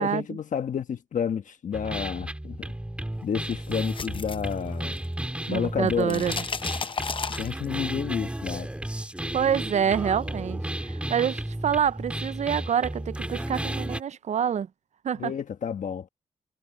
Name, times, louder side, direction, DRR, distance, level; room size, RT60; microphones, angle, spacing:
voice 1, 0.0-2.7 3.2-5.0 5.5-6.4 7.3-8.7 15.1-16.1, left 7 dB, 75° left, 1.2 m, -30 dB
sound 1, 1.7-14.0, right 1 dB, 10° right, 3.5 m, -33 dB
sound 2, 3.5-5.2 5.5-7.9, left 5 dB, 40° left, 0.7 m, -34 dB
voice 2, 5.5-6.3 9.3-14.7 15.0-15.3, right 8 dB, 60° right, 0.4 m, -27 dB
wide cardioid pair, 145°, 13 cm